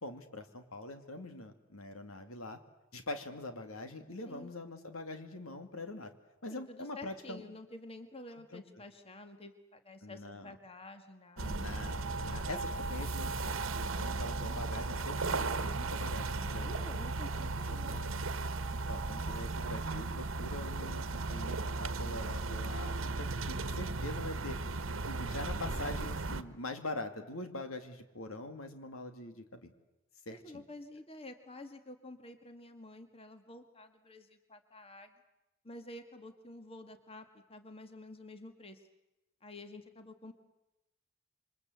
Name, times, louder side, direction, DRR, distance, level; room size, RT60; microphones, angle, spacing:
voice 1, 0.0-2.6 2.9-6.1 6.4-7.4 8.5-8.6 10.0-10.5 11.4-16.7 17.7-18.1 18.9-29.7 30.3-30.6, left 2 dB, 80° left, 7 dB, 2.6 m, -44 dB
voice 2, 6.5-11.7 16.3-18.0 25.7-26.4 30.3-35.1 35.6-38.8 39.4-40.3, left 2 dB, 25° left, 7 dB, 1.8 m, -50 dB
sound 1, 11.4-26.4, right 3 dB, 70° right, 1.3 m, -36 dB
28.0 x 25.0 x 8.0 m, 0.95 s
head